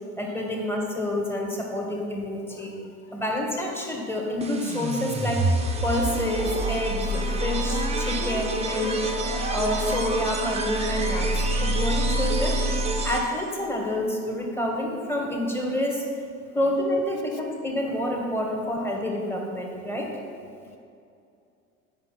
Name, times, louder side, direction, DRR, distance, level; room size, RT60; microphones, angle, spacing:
voice 1, 0.1-2.8 3.1-5.5 5.8-9.1 9.5-12.6 13.0-16.0 16.5-20.1, left 1 dB, 5° left, -1 dB, 1.6 m, -28 dB
voice 2, 2.5-3.2 17.3-17.4 18.6-18.7 20.6-20.8, left 9 dB, 70° left, 8 dB, 0.6 m, -52 dB
sound 1, 4.4-13.5, right 2 dB, 15° right, 0.9 m, -27 dB
7.9 x 5.5 x 5.9 m, 2.5 s
figure-of-eight pair, 80°, 45 cm